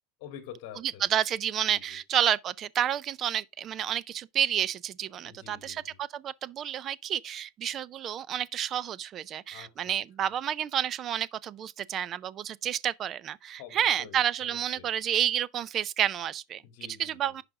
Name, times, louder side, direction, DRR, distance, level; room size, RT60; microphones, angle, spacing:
voice 1, 0.2-1.0 1.7-2.0 5.2-6.0 9.5-10.0 13.6-14.9 16.6-17.3, left 9 dB, 50° left, 2.9 m, -47 dB
voice 2, 1.0-16.6 17.0-17.4, right 10 dB, 25° right, 0.4 m, -30 dB
11.0 x 5.0 x 3.6 m
supercardioid pair, 170°, 0 cm